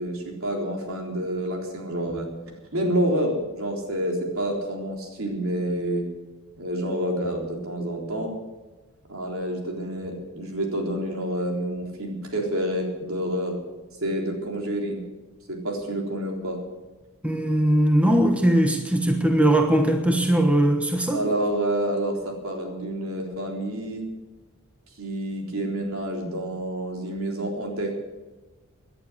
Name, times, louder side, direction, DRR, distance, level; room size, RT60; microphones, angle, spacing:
voice 1, 0.0-2.3 2.7-6.0 6.6-8.3 9.1-13.6 14.0-15.0 15.5-16.6 21.0-24.0 25.0-27.9, right 1 dB, 70° right, 1 dB, 3.8 m, -28 dB
voice 2, 17.2-21.2, right 1 dB, 5° right, 3 dB, 1.2 m, -20 dB
18.0 x 11.0 x 6.3 m, 1.2 s
head